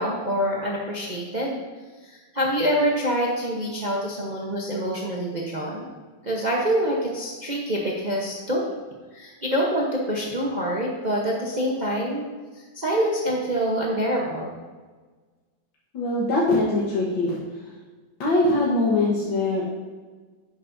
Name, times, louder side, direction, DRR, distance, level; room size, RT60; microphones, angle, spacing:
voice 1, 0.0-1.6 2.0-5.9 6.2-8.6 9.1-14.5, equal, 35° right, -3 dB, 0.7 m, -26 dB
voice 2, 15.9-17.4 18.2-19.6, left 2 dB, 75° left, -6 dB, 2.0 m, -22 dB
10.5 x 8.4 x 2.7 m, 1.4 s
omnidirectional pair, 2.2 m